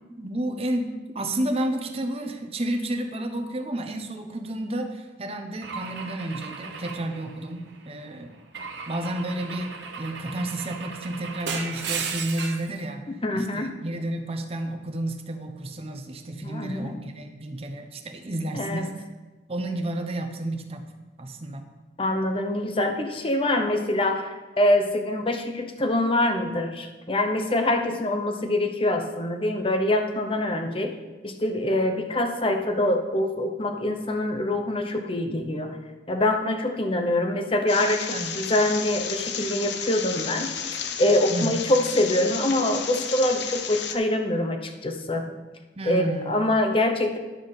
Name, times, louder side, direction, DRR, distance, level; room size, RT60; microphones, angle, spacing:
voice 1, 0.2-8.3 8.9-13.0 13.3-18.9 19.5-20.9 21.2-21.7 38.1-38.3 41.3-41.6 45.8-46.3, right 1 dB, 35° right, 5 dB, 0.7 m, -31 dB
Car / Engine / Glass, 5.6-7.8 8.5-12.7, right 5 dB, 85° right, 1.0 m, -35 dB
voice 2, 13.2-13.7 16.4-17.0 18.5-18.8 22.0-30.9 31.2-35.8 36.1-45.2 45.8-47.2, left 1 dB, 30° left, 5 dB, 0.8 m, -25 dB
sound 1, 37.7-44.0, left 7 dB, 75° left, 0.7 m, -32 dB
10.5 x 6.9 x 4.0 m, 1.2 s
head